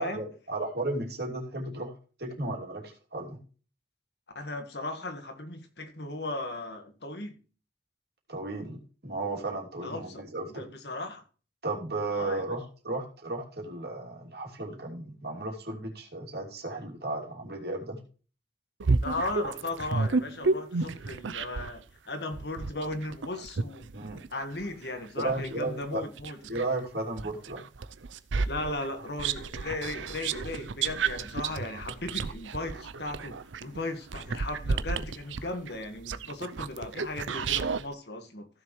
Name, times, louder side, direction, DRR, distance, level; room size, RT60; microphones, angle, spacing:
voice 1, 0.0-1.9 2.2-3.4 8.3-10.7 11.6-18.0 23.9-24.2 25.2-26.0 26.5-27.6, right 2 dB, 55° right, 3.0 m, -34 dB
voice 2, 4.4-7.4 9.8-10.2 10.5-11.2 12.1-12.6 19.0-23.9 24.3-26.4 28.5-38.5, left 2 dB, 60° left, 1.7 m, -36 dB
sound 1, 18.8-21.8 22.3-26.7 27.2-37.8, right 4 dB, 90° right, 0.6 m, -32 dB
15.5 x 6.9 x 3.2 m
head